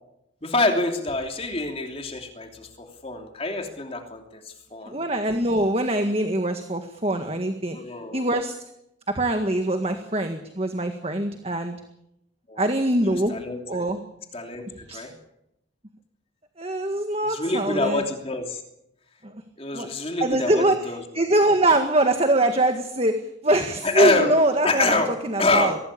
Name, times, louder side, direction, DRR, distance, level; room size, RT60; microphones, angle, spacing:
voice 1, 0.4-5.0 7.7-8.3 9.8-9.9 12.5-12.7 13.0-13.8 14.3-14.6 14.9-15.1 17.2-18.6 19.6-21.0 23.8-24.3 24.6-25.8, left 2 dB, 30° left, 3 dB, 3.0 m, -26 dB
voice 2, 4.9-7.8 8.1-8.6 9.1-11.8 12.6-13.4 13.7-14.0 14.9-15.0 16.6-18.0 19.2-19.3 19.7-19.9 20.2-20.8 21.1-23.1 23.4-25.0 25.2-25.7, right 1 dB, 30° right, 6 dB, 1.7 m, -23 dB
23.5 x 18.0 x 8.6 m, 0.80 s
head